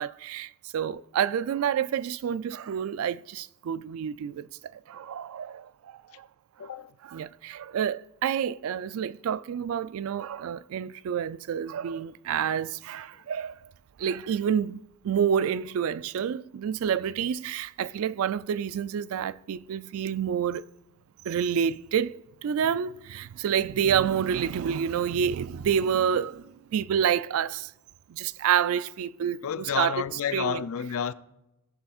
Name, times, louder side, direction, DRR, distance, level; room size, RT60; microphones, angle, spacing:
voice 1, 0.0-4.5 4.9-6.3 7.1-13.5 14.0-20.6 21.3-27.7 28.1-29.4 29.8-30.0 30.3-30.6, right 8 dB, 70° right, 0.3 m, -28 dB
voice 2, 6.6-6.9 13.1-13.2 29.4-31.1, left 7 dB, 70° left, 0.4 m, -30 dB
18.5 x 6.9 x 2.4 m
head